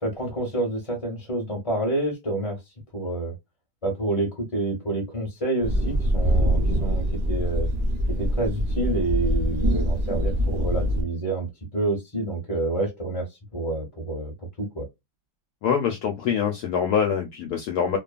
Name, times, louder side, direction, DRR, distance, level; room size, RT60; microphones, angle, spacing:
voice 1, 0.0-2.6 2.9-3.3 3.8-7.7 8.2-11.5 11.7-14.3 14.6-14.9, right 2 dB, 25° left, 0.8 m, -28 dB
sound 1, 5.6-11.0, equal, 50° right, 0.6 m, -24 dB
voice 2, 15.6-18.0, left 7 dB, 70° left, 1.0 m, -24 dB
2.8 x 2.3 x 2.3 m
omnidirectional pair, 2.0 m